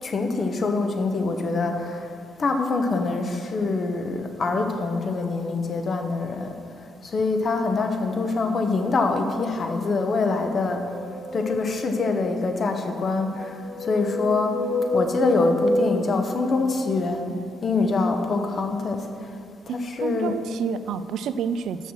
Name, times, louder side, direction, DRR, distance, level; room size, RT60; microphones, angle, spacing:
voice 1, 0.0-2.1 2.4-6.5 7.0-10.9 11.3-14.6 14.9-19.3 19.7-20.4, left 3 dB, 45° left, 5 dB, 0.9 m, -25 dB
sound 1, 10.6-12.3 13.1-17.0, left 1 dB, 75° left, 1.4 m, -29 dB
voice 2, 19.7-21.9, right 7 dB, 75° right, 12 dB, 0.3 m, -29 dB
6.5 x 6.1 x 6.5 m, 2.4 s
cardioid pair, 90°, 0 cm